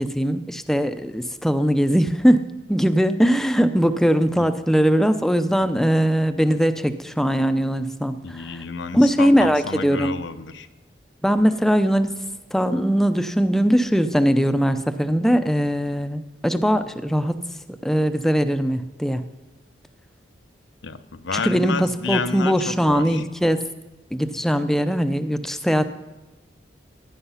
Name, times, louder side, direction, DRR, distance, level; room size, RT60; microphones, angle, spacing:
voice 1, 0.0-2.4 2.7-8.6 8.9-10.1 11.2-12.1 12.5-17.4 17.8-19.2 21.3-23.6 24.1-25.9, equal, ahead, 10 dB, 0.6 m, -20 dB
voice 2, 8.2-10.7 20.8-23.2, left 5 dB, 80° left, 10 dB, 0.8 m, -30 dB
15.5 x 11.0 x 5.7 m, 1.1 s
head